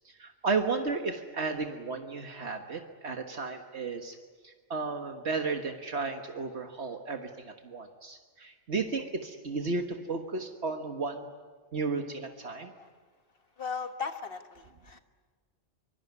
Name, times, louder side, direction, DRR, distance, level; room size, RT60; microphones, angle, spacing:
voice 1, 0.1-4.2 4.4-11.3 11.7-12.7, right 4 dB, 70° right, 5 dB, 1.7 m, -34 dB
voice 2, 13.6-15.0, left 5 dB, 55° left, 8 dB, 1.7 m, -37 dB
24.5 x 23.0 x 9.5 m, 1.5 s
omnidirectional pair, 1.2 m